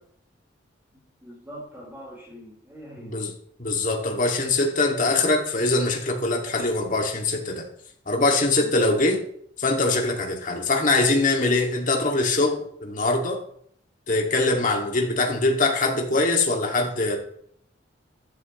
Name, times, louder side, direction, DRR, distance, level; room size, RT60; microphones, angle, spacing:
voice 1, 0.9-3.1 8.6-8.9, equal, 10° right, -8 dB, 4.7 m, -43 dB
voice 2, 3.6-7.6 8.1-9.2 9.6-13.4 14.1-17.2, left 2 dB, 45° left, 1 dB, 2.5 m, -23 dB
14.5 x 11.0 x 3.3 m, 0.64 s
head